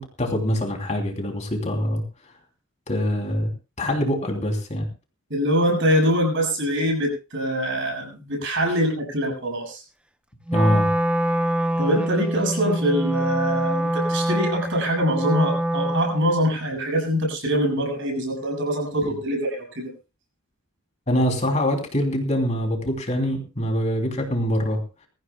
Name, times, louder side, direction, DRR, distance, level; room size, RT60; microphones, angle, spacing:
voice 1, 0.0-2.3 2.9-3.5 3.8-4.9 10.5-10.9 21.1-24.8, equal, 30° left, 3 dB, 3.2 m, -24 dB
voice 2, 5.3-9.8 11.8-19.9, equal, 55° right, 2 dB, 7.0 m, -24 dB
Wind instrument woodwind instrument, 10.5-16.5, right 1 dB, 5° right, 0.7 m, -25 dB
23.0 x 15.0 x 2.3 m, 0.30 s
head